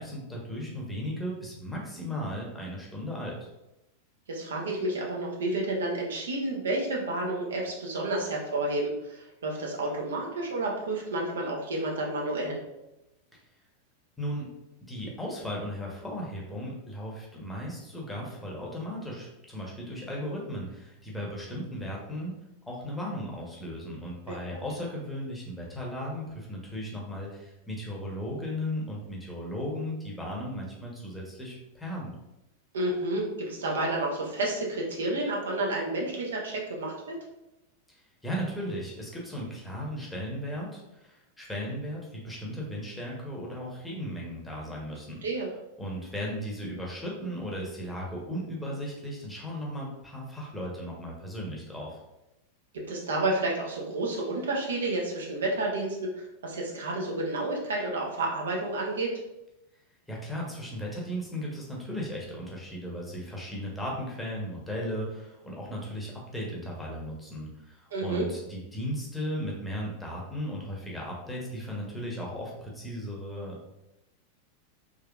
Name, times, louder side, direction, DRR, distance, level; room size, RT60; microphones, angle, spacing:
voice 1, 0.0-3.5 14.2-14.5 14.8-22.3 22.7-32.1 37.9-45.2 45.8-52.0 60.1-73.6, equal, 5° left, -3 dB, 0.9 m, -36 dB
voice 2, 4.3-12.6 24.3-24.6 32.7-37.2 45.2-45.5 52.7-56.1 56.4-59.1 67.9-68.3, right 2 dB, 65° right, -1 dB, 0.7 m, -30 dB
3.6 x 3.1 x 2.3 m, 0.92 s
figure-of-eight pair, 90°, 0 cm